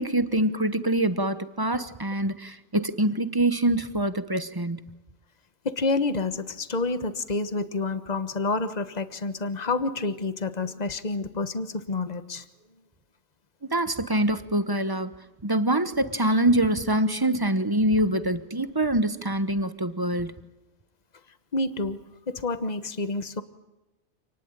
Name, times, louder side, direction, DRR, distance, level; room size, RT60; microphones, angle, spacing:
voice 1, 0.0-4.9 13.7-15.1 15.4-20.3, right 1 dB, 20° right, 1.1 m, -25 dB
voice 2, 5.6-12.4 21.5-23.4, left 3 dB, 35° left, 1.4 m, -29 dB
28.5 x 19.5 x 9.0 m
omnidirectional pair, 1.2 m